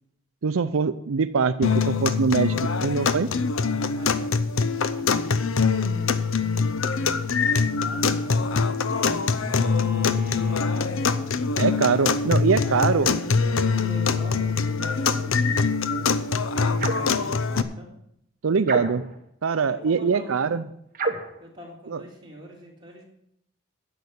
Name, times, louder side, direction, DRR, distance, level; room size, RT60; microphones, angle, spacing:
voice 1, 0.4-2.5 2.8-3.3 11.6-13.1 18.4-19.0 19.4-20.6 21.9-22.0, right 5 dB, 85° right, 12 dB, 0.5 m, -23 dB
sound 1, 1.6-17.6, left 5 dB, 80° left, 0.7 m, -24 dB
voice 2, 3.9-5.2 7.4-11.6 12.6-15.4 15.9-17.9 19.6-20.7 21.4-23.0, equal, 20° right, -2 dB, 3.6 m, -44 dB
Bowed string instrument, 7.0-10.8, left 2 dB, 60° left, 4.2 m, -38 dB
sound 2, 16.8-17.2 18.6-19.2 20.9-21.4, right 3 dB, 40° right, 1.3 m, -28 dB
10.5 x 6.9 x 8.5 m, 0.75 s
head